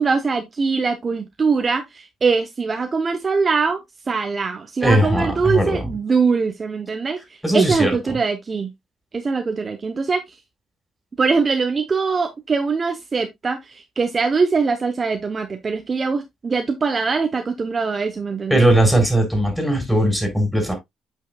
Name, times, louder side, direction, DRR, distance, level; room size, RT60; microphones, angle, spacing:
voice 1, 0.0-3.8 4.1-7.2 7.5-8.7 9.1-10.2 11.2-18.7, right 4 dB, 35° right, 0.8 m, -22 dB
voice 2, 4.8-5.9 7.4-8.2 18.5-20.7, right 1 dB, ahead, 4.3 m, -19 dB
8.6 x 5.6 x 2.3 m
cardioid pair, 90°, 0 cm